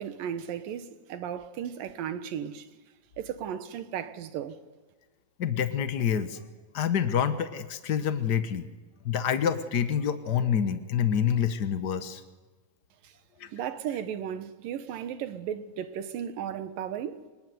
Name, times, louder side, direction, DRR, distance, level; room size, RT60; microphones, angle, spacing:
voice 1, 0.0-2.7 3.2-4.6 13.0-13.1 13.4-17.2, right 9 dB, 85° right, 3.1 m, -35 dB
voice 2, 5.4-6.4 6.7-8.7 9.0-12.2 13.4-13.5, left 8 dB, 80° left, 0.9 m, -27 dB
26.5 x 22.0 x 9.4 m
omnidirectional pair, 3.9 m